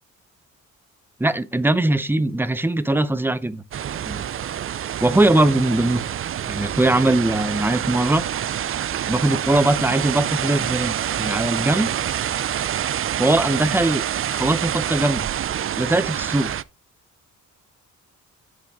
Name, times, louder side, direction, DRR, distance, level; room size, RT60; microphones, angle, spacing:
voice 1, 1.2-3.6 4.1-4.2 5.0-6.0 6.5-8.2 9.1-11.9 13.2-14.0 14.3-15.3 15.7-16.5, right 2 dB, 5° right, 0.7 m, -20 dB
sound 1, 3.7-16.6, right 10 dB, 45° right, 0.5 m, -27 dB
10.5 x 6.6 x 3.6 m
cardioid pair, 125°, 31 cm